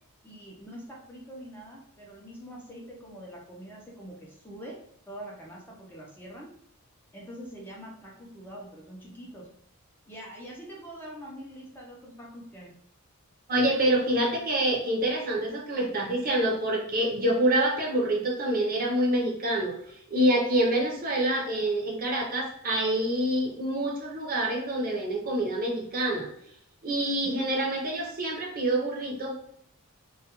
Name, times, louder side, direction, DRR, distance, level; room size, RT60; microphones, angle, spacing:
voice 1, 0.2-4.8 5.1-6.5 7.1-9.5 10.1-12.7 27.2-27.5, equal, 10° left, -3 dB, 0.4 m, -44 dB
voice 2, 13.5-26.3 26.8-29.4, right 1 dB, 40° right, -1 dB, 0.6 m, -26 dB
2.2 x 2.2 x 2.9 m, 0.69 s
head